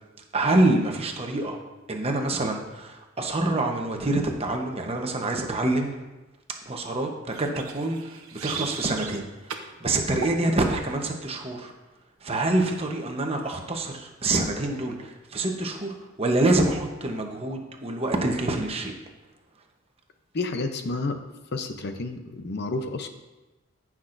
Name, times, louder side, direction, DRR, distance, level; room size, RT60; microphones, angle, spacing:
voice 1, 0.3-1.6 1.9-5.9 6.7-11.7 12.2-18.9, right 2 dB, 30° right, 2 dB, 1.0 m, -26 dB
sound 1, 7.3-9.2 9.5-9.7 10.2-10.4, right 7 dB, 85° right, 0.8 m, -36 dB
voice 2, 20.3-21.2 21.5-23.1, left 3 dB, 50° left, 6 dB, 0.7 m, -30 dB
15.5 x 6.1 x 2.6 m, 1.1 s
head